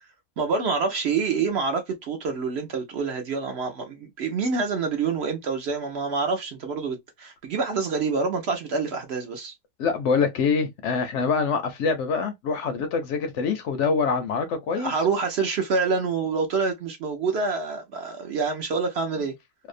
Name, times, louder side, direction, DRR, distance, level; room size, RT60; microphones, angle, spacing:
voice 1, 0.4-9.5 14.7-19.3, right 4 dB, 60° right, 0.8 m, -27 dB
voice 2, 9.8-14.9, left 5 dB, 70° left, 0.8 m, -25 dB
2.7 x 2.0 x 2.4 m
omnidirectional pair, 1.4 m